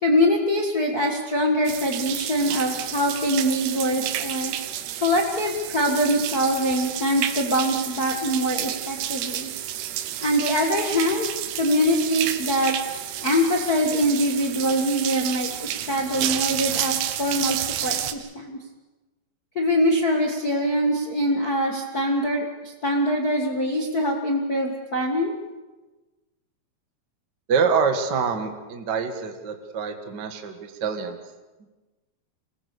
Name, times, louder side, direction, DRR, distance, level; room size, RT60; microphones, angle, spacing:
voice 1, 0.0-4.5 5.0-9.5 10.2-11.3 11.6-12.7 13.2-18.6 19.5-25.3, equal, 50° left, 0 dB, 1.1 m, -23 dB
sound 1, 1.7-18.1, right 11 dB, 85° right, 3.2 m, -30 dB
voice 2, 27.5-31.2, right 5 dB, 55° right, 5 dB, 1.1 m, -25 dB
25.5 x 19.5 x 6.9 m, 1.2 s
omnidirectional pair, 4.7 m